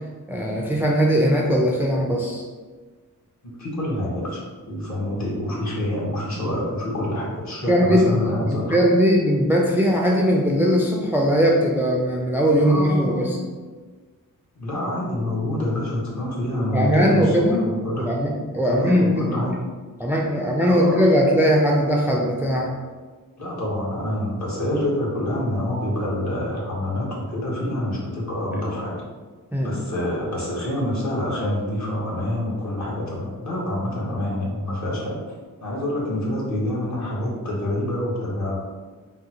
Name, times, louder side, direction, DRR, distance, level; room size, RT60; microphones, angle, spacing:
voice 1, 0.3-2.4 7.7-8.1 8.5-13.4 16.7-17.6 18.1-19.6 20.0-22.8 29.5-29.8, equal, 5° right, -2 dB, 0.4 m, -20 dB
voice 2, 3.4-4.4 4.7-8.8 12.6-13.3 14.6-18.2 18.6-19.6 20.7-21.1 23.4-29.0 29.6-35.3 35.6-38.6, left 1 dB, 55° left, -5 dB, 1.1 m, -27 dB
3.8 x 2.0 x 2.8 m, 1.4 s
cardioid pair, 70°, 34 cm